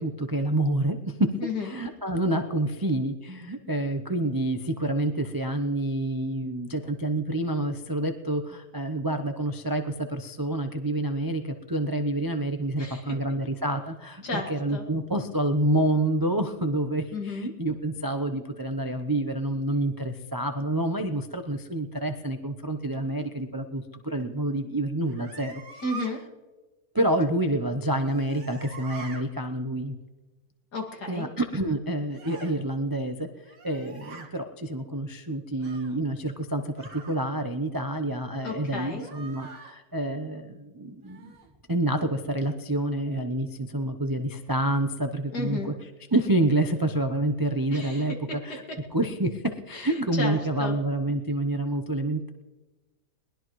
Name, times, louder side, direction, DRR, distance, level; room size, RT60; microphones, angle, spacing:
voice 1, 0.0-1.3 1.6-25.8 26.9-29.9 31.1-33.3 33.6-41.3 41.7-45.7 46.1-48.6 48.9-52.3, right 1 dB, 35° right, 6 dB, 0.3 m, -28 dB
voice 2, 1.4-1.8 12.8-13.2 14.2-14.8 17.1-17.5 25.8-26.2 30.7-31.3 38.4-39.1 45.3-45.7 47.7-48.4 49.7-50.8, left 2 dB, 70° left, 1 dB, 2.7 m, -33 dB
sound 1, 25.0-26.1 27.8-29.2 32.1-32.6 33.4-34.3 35.6-36.0 36.8-37.2 39.0-39.8 41.0-41.5, right 5 dB, 85° right, 2.2 m, -44 dB
21.5 x 19.5 x 3.1 m, 1.2 s
omnidirectional pair, 1.8 m